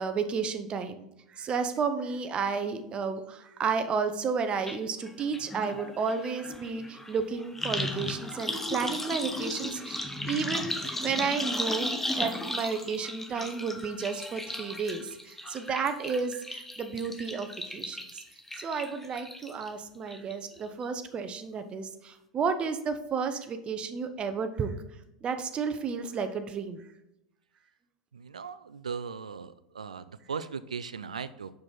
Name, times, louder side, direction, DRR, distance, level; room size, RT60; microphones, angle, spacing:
voice 1, 0.0-11.9 12.2-18.2 18.5-26.9, right 5 dB, 30° right, 8 dB, 0.7 m, -32 dB
sound 1, 4.7-4.8 5.1-19.7 20.1-20.6 20.8-20.9, left 1 dB, 5° left, 0.7 m, -35 dB
voice 2, 28.1-31.5, right 6 dB, 80° right, 15 dB, 0.4 m, -38 dB
6.2 x 4.9 x 3.8 m, 0.86 s
figure-of-eight pair, 85°, 4 cm